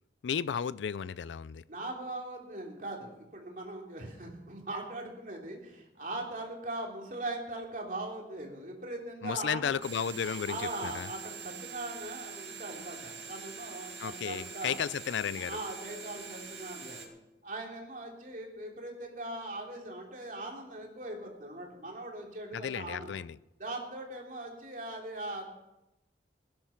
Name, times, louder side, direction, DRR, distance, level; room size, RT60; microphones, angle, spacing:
voice 1, 0.2-1.6 9.2-11.1 14.0-15.6 22.5-23.4, left 7 dB, 90° left, 19 dB, 0.4 m, -34 dB
voice 2, 1.7-9.7 10.2-14.8 15.4-17.1 17.4-23.1 23.6-25.5, right 2 dB, 45° right, 0 dB, 3.3 m, -40 dB
sound 1, 9.8-17.1, right 5 dB, 90° right, 2.4 m, -44 dB
17.0 x 10.5 x 5.8 m, 0.92 s
head